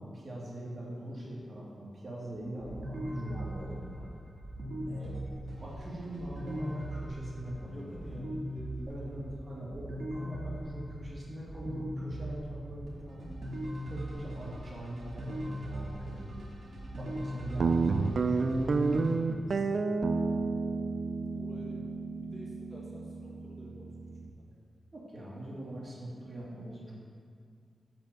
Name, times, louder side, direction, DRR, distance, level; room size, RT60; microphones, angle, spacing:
voice 1, 0.0-4.1 4.9-5.1 5.6-7.9 8.9-13.3 13.8-16.5 17.0-19.8 24.9-26.9, right 1 dB, 35° right, -5 dB, 2.3 m, -42 dB
sound 1, 2.3-19.1, right 1 dB, 75° right, 2.1 m, -40 dB
voice 2, 4.7-5.1 6.4-6.6 7.7-9.6 21.3-23.9 24.2-24.4, equal, 20° left, -5 dB, 1.7 m, -49 dB
Guitar, 17.6-24.3, right 4 dB, 60° right, 0.4 m, -31 dB
6.1 x 6.1 x 7.0 m, 2.2 s
cardioid pair, 75°, 0 cm